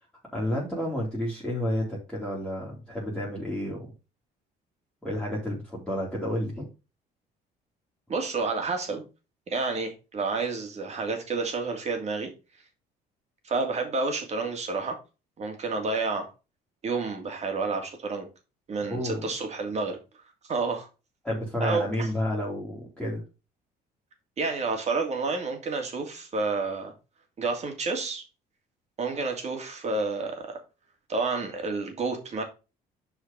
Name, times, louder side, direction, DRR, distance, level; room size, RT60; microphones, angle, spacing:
voice 1, 0.3-3.9 5.0-6.7 18.9-19.3 21.2-23.2, left 1 dB, 5° left, 2.9 m, -30 dB
voice 2, 8.1-9.0 9.5-12.3 13.4-15.0 15.4-16.3 16.8-18.3 18.7-20.0 20.5-20.9 21.6-22.1 24.4-26.9 27.4-28.2 29.0-30.6 31.1-32.4, right 3 dB, 40° right, 2.8 m, -29 dB
7.1 x 5.0 x 5.2 m
cardioid pair, 110°, 17 cm